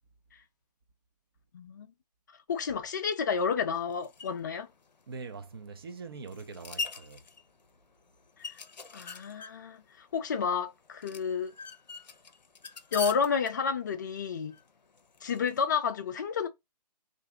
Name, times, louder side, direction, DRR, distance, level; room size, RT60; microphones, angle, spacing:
voice 1, 1.5-1.9 2.5-4.7 8.5-8.6 8.9-11.5 12.9-14.5 15.2-16.5, left 6 dB, 30° left, 0.4 m, -30 dB
sound 1, 3.7-15.6, left 4 dB, 90° left, 0.5 m, -44 dB
voice 2, 5.1-7.2, right 4 dB, 35° right, 0.4 m, -43 dB
2.6 x 2.5 x 3.3 m
figure-of-eight pair, 145°, 21 cm